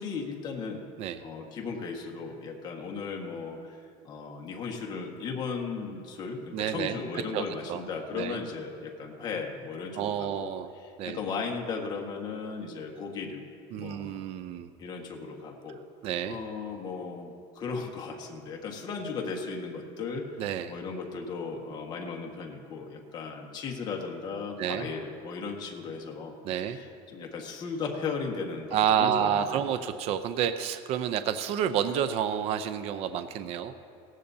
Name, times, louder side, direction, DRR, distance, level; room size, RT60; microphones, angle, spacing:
voice 1, 0.0-0.8 1.2-3.8 4.0-10.5 10.8-13.4 13.7-14.2 14.8-15.8 16.3-20.2 20.7-26.3 26.7-29.6, left 4 dB, 30° left, 1 dB, 1.5 m, -36 dB
voice 2, 6.5-7.8 8.1-8.4 10.0-10.7 11.0-11.2 13.7-14.7 16.0-16.4 20.4-20.8 24.6-24.9 26.4-26.8 28.7-33.7, right 9 dB, 50° right, 10 dB, 0.6 m, -29 dB
18.0 x 15.5 x 2.8 m, 2.4 s
cardioid pair, 145°, 13 cm